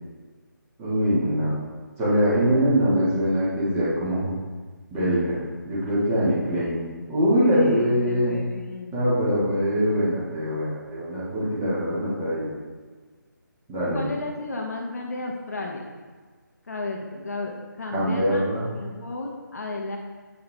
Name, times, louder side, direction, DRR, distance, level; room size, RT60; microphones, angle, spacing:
voice 1, 0.8-1.6 2.0-4.3 4.9-5.4 5.7-6.8 7.1-8.4 8.9-12.5 13.7-14.0 17.9-18.7, equal, 15° right, -9 dB, 1.9 m, -23 dB
voice 2, 7.5-10.0 13.9-15.9 16.7-20.0, left 2 dB, 50° left, 1 dB, 1.0 m, -34 dB
7.7 x 5.6 x 3.4 m, 1.4 s
figure-of-eight pair, 155°, 11 cm